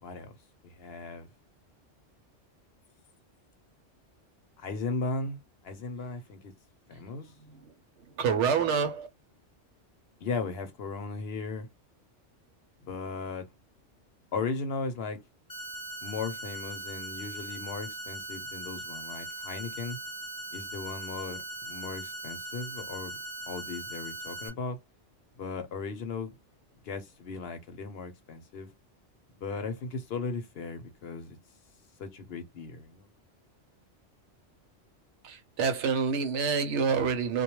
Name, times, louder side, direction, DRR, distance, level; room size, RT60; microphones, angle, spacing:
voice 1, 0.0-0.3 0.6-1.3 4.6-6.5 6.9-7.3 10.2-11.7 12.8-13.5 14.3-15.2 16.0-20.0 20.5-23.2 23.5-24.8 25.4-26.4 26.8-28.7 29.4-31.4 32.0-33.1, left 4 dB, 60° left, 0.8 m, -36 dB
voice 2, 7.4-7.7 8.1-9.1 35.2-37.4, right 6 dB, 75° right, 0.9 m, -27 dB
sound 1, 15.5-24.5, right 2 dB, 35° left, 0.3 m, -40 dB
2.2 x 2.2 x 2.9 m
omnidirectional pair, 1.2 m